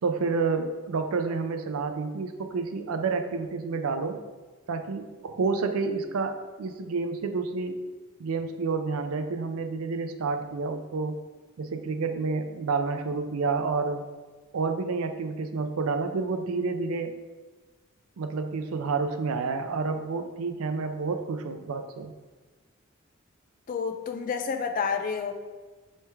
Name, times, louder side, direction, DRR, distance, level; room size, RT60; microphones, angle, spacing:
voice 1, 0.0-4.2 4.7-7.9 8.2-11.2 11.6-14.0 14.5-17.1 18.2-22.1, right 4 dB, 85° right, 7 dB, 0.5 m, -29 dB
voice 2, 23.7-25.3, left 5 dB, 40° left, 5 dB, 0.3 m, -29 dB
3.3 x 3.2 x 4.5 m, 1.3 s
head